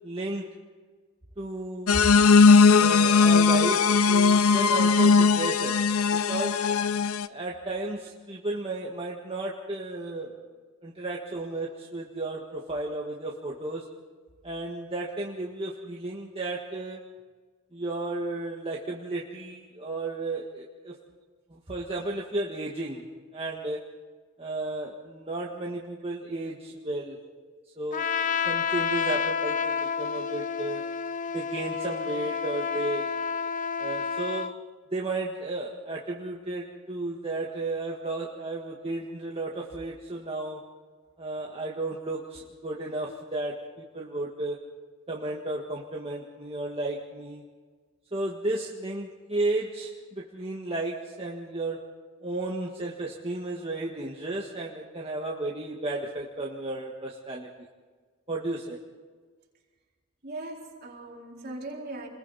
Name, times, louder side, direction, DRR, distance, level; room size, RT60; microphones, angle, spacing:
voice 1, 0.0-0.5 1.4-2.0 2.8-6.6 7.3-10.4 10.8-13.9 14.4-17.0 17.7-20.9 21.5-23.0 23.3-23.8 24.4-27.2 27.8-28.1 28.5-30.8 31.3-33.1 33.8-34.5 34.9-40.6 41.2-44.6 45.1-47.4 48.1-51.8 52.2-57.5 58.3-58.8, right 2 dB, 25° right, -2 dB, 1.8 m, -33 dB
sound 1, 1.9-7.3, left 5 dB, 75° left, 0.7 m, -19 dB
Trumpet, 27.9-34.5, left 6 dB, 35° left, 0.6 m, -30 dB
voice 2, 60.2-62.1, right 2 dB, 45° right, -2 dB, 4.5 m, -40 dB
29.0 x 21.5 x 4.2 m, 1.5 s
head